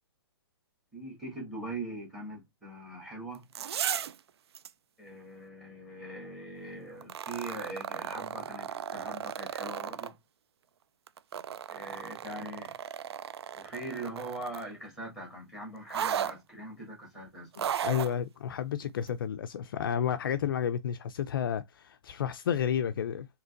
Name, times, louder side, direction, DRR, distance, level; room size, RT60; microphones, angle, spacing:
voice 1, 0.9-3.5 5.0-10.2 11.7-12.8 13.5-17.7, right 2 dB, ahead, 1.7 m, -42 dB
sound 1, 3.3-4.2 4.5-4.7 7.0-10.1 11.1-14.7 15.9-16.3 17.5-18.1 19.1-19.2, right 9 dB, 75° right, 0.4 m, -35 dB
voice 2, 17.8-23.3, left 8 dB, 55° left, 0.4 m, -31 dB
3.8 x 2.9 x 2.4 m
hypercardioid pair, 165°, 14 cm